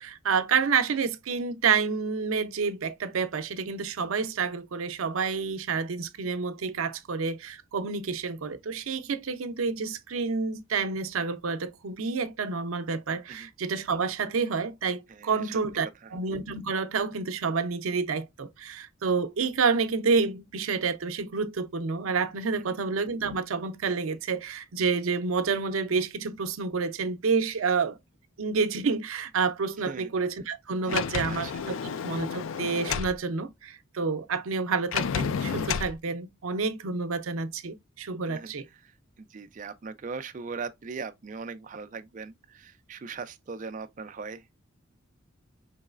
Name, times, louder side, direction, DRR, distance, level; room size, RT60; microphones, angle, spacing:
voice 1, 0.0-28.0 28.4-31.7 32.0-38.7, right 5 dB, 85° right, 0.5 m, -29 dB
voice 2, 15.1-15.5 15.8-16.1 22.5-22.6 29.9-30.1 30.9-31.7 38.3-38.5 38.8-38.9 39.2-44.4, right 4 dB, 40° right, 0.4 m, -40 dB
Sliding door, 30.9-33.2 34.9-35.9, left 7 dB, 75° left, 0.3 m, -30 dB
4.6 x 3.1 x 2.4 m
head